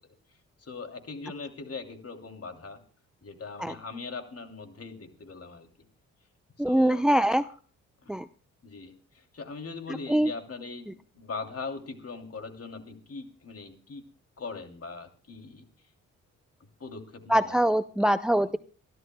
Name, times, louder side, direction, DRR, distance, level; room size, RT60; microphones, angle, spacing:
voice 1, 0.6-2.8 3.2-5.7 6.6-7.0 8.0-8.2 8.6-14.0 14.4-15.7 16.8-17.6, left 4 dB, 45° left, 5 dB, 3.0 m, -40 dB
voice 2, 6.6-7.4 8.1-8.3 10.1-10.3 17.3-18.6, right 1 dB, ahead, 13 dB, 0.6 m, -23 dB
27.0 x 12.5 x 2.3 m, 0.39 s
supercardioid pair, 50°, 34 cm